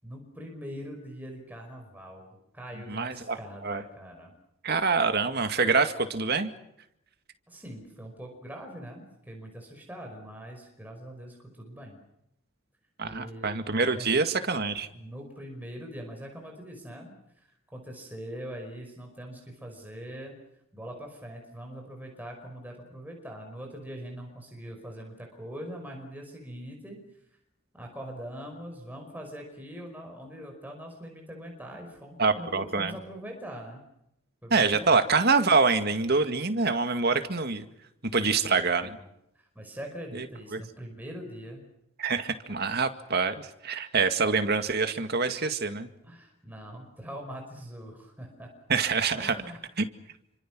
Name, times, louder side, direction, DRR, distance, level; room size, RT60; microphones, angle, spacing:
voice 1, 0.0-2.3 2.5-4.3 7.5-12.0 13.0-13.5 13.8-14.1 14.9-20.4 20.7-27.0 27.7-33.9 34.4-35.0 38.2-39.1 39.4-41.7 46.0-48.5 49.1-49.6, equal, 10° right, 1 dB, 5.4 m, -42 dB
voice 2, 2.9-3.4 3.6-3.8 4.6-6.5 13.0-14.9 32.2-32.9 34.5-37.7 38.1-38.9 40.1-40.2 40.5-40.6 42.0-45.9 48.7-49.3 49.8-49.9, right 4 dB, 50° right, 8 dB, 2.1 m, -25 dB
29.0 x 25.5 x 6.2 m, 0.81 s
head